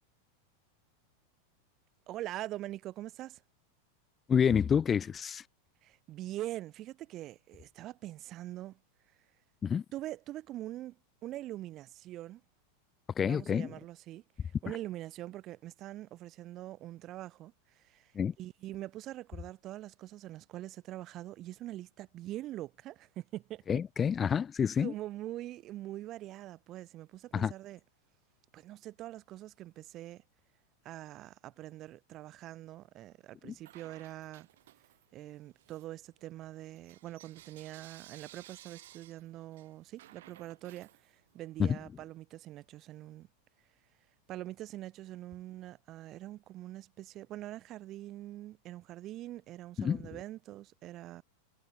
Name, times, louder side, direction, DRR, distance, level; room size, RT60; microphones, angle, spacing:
voice 1, 2.1-3.4 5.8-8.8 9.9-12.4 13.3-23.6 24.2-24.3 24.7-27.8 28.5-30.2 30.8-34.5 35.1-43.3 44.3-51.2, right 15 dB, 35° right, 1.4 m, -44 dB
voice 2, 4.3-5.4 9.6-9.8 13.2-13.7 18.2-18.3 23.7-24.9 27.3-27.5 33.4-33.5 41.6-41.7 49.8-50.0, left 7 dB, 20° left, 0.3 m, -28 dB
Bell / Coin (dropping), 33.6-35.2 35.5-41.5, right 14 dB, 55° right, 5.3 m, -57 dB
figure-of-eight pair, 90°, 0 cm